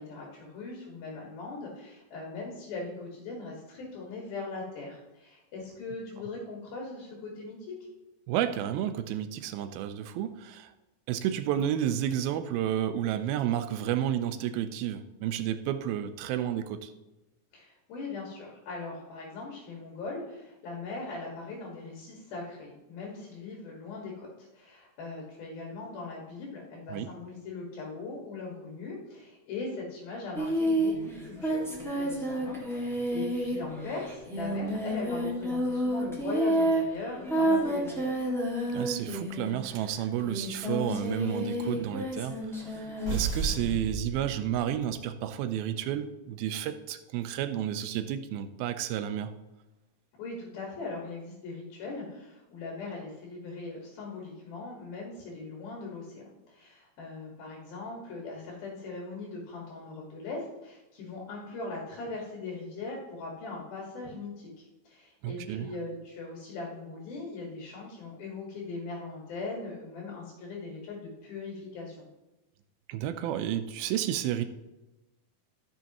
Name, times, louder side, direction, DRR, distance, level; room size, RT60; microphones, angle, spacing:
voice 1, 0.0-7.7 17.5-38.1 50.2-72.1, left 3 dB, 75° left, -2 dB, 3.8 m, -40 dB
voice 2, 8.3-10.7 11.1-16.9 26.9-27.1 38.7-42.4 43.1-49.3 65.2-65.7 72.9-74.4, right 10 dB, 80° right, 9 dB, 2.5 m, -31 dB
Singing, 30.3-39.7 40.2-43.1, right 1 dB, 5° left, 0.5 m, -30 dB
sound 1, 43.0-44.9, right 4 dB, 20° right, 3.2 m, -33 dB
14.0 x 6.9 x 3.0 m, 1.0 s
omnidirectional pair, 4.4 m